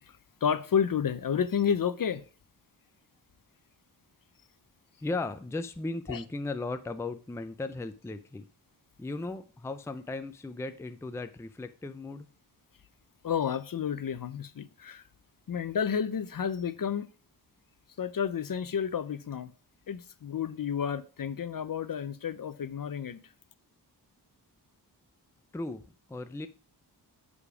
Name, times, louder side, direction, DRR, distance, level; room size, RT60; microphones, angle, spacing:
voice 1, 0.4-2.2 6.1-6.2 13.2-15.0 15.5-17.1 18.0-19.5 19.9-23.2, left 7 dB, 55° left, 0.6 m, -30 dB
voice 2, 5.0-8.5 9.0-12.3 25.5-26.5, left 2 dB, 5° left, 0.4 m, -36 dB
7.0 x 5.0 x 4.9 m
wide cardioid pair, 135°, 41 cm